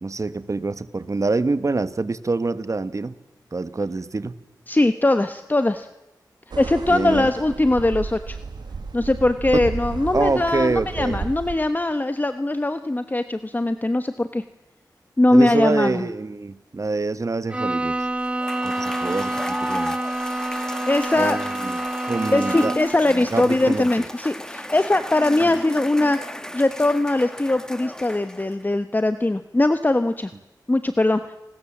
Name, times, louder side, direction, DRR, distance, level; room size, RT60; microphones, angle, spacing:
voice 1, 0.0-3.2 3.5-4.4 6.9-7.3 9.5-9.6 10.1-11.3 15.3-18.0 18.6-20.0 21.2-21.8 22.1-22.7 23.1-23.9 25.4-25.6, right 3 dB, 45° right, 14 dB, 1.3 m, -25 dB
voice 2, 4.7-5.9 6.6-8.4 8.9-14.4 15.2-16.1 20.9-21.4 22.3-30.3 30.7-31.2, left 2 dB, 25° left, 10 dB, 1.2 m, -21 dB
sound 1, 6.5-11.6, right 4 dB, 90° right, 2.6 m, -33 dB
Bowed string instrument, 17.5-23.0, right 1 dB, 15° right, 2.0 m, -27 dB
Cheering / Applause / Crowd, 18.2-28.7, left 1 dB, 10° left, 1.8 m, -35 dB
29.5 x 20.0 x 7.4 m, 0.97 s
cardioid pair, 55°, 7 cm